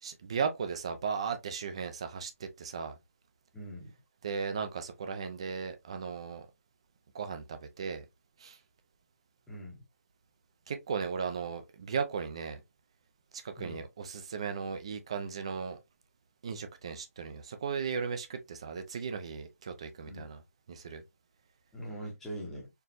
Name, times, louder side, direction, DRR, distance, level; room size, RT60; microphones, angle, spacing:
voice 1, 0.0-3.0 4.2-6.5 7.1-8.0 8.4-8.6 10.7-12.6 13.3-15.8 16.4-20.4 20.7-21.0, right 6 dB, 20° right, 0.4 m, -36 dB
voice 2, 3.5-3.9 9.5-9.8 13.6-13.9 20.1-20.3 21.7-22.7, right 1 dB, 5° left, 0.8 m, -42 dB
4.4 x 3.1 x 2.6 m
figure-of-eight pair, 170°, 8 cm